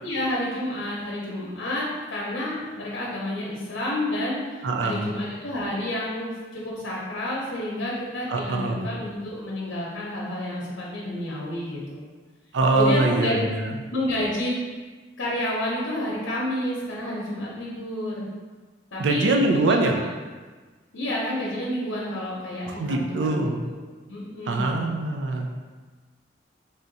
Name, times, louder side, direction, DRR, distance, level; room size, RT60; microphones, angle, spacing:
voice 1, 0.0-12.0 12.8-13.4 13.9-14.6 15.2-18.3 18.9-19.8 20.9-23.7 24.1-24.9, left 1 dB, 90° left, -5 dB, 0.8 m, -30 dB
voice 2, 4.6-5.1 8.3-8.9 12.5-13.7 19.0-19.9 22.7-23.6 24.5-25.5, right 2 dB, 75° right, 2 dB, 0.4 m, -23 dB
3.5 x 2.7 x 3.9 m, 1.3 s
head